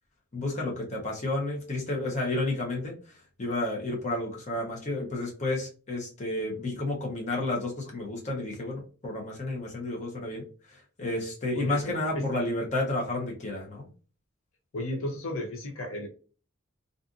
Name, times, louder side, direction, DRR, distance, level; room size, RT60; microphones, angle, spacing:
voice 1, 0.3-2.9 3.4-10.4 11.0-13.9, left 2 dB, 35° left, -1 dB, 0.8 m, -31 dB
voice 2, 14.7-16.1, left 1 dB, 70° left, 2 dB, 0.6 m, -33 dB
2.5 x 2.4 x 2.5 m, 0.37 s
head